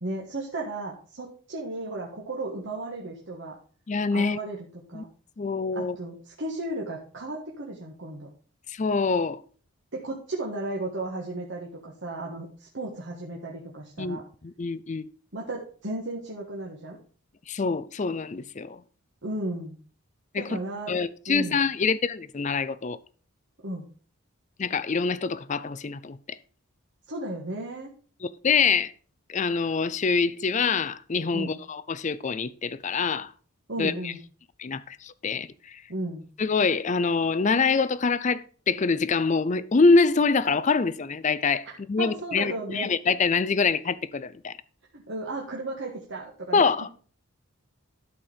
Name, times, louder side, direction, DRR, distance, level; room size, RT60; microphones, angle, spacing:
voice 1, 0.0-3.6 4.1-5.1 5.7-8.3 9.9-14.2 15.3-17.0 19.2-19.8 20.4-20.9 21.3-21.6 23.6-23.9 27.1-27.9 31.3-31.5 33.7-34.2 35.9-36.2 42.0-42.9 44.9-46.7, right 2 dB, 55° right, 1.5 m, -34 dB
voice 2, 3.9-4.4 4.9-5.0 5.4-6.0 8.7-9.4 14.0-15.1 17.5-18.8 20.3-20.5 20.9-23.0 24.6-26.2 28.2-28.9 29.3-33.3 33.8-34.1 34.6-35.8 36.4-44.5 46.5-46.9, left 4 dB, 35° left, 0.4 m, -25 dB
12.5 x 4.4 x 5.0 m
head